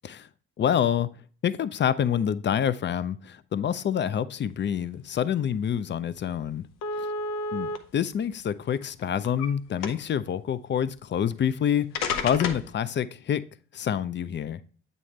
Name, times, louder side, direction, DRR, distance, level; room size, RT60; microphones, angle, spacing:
voice 1, 0.6-1.1 1.4-6.7 7.0-7.1 7.5-11.9 12.2-13.4 13.7-14.6, left 9 dB, 35° left, 16 dB, 0.5 m, -27 dB
sound 1, 5.7-5.8 6.1-6.3 6.8-7.8 8.6-9.5 9.8-10.2 11.3-11.4 11.9-12.7, left 4 dB, 70° left, 0.8 m, -31 dB
8.4 x 4.1 x 3.2 m, 0.42 s
hypercardioid pair, 45°, 34 cm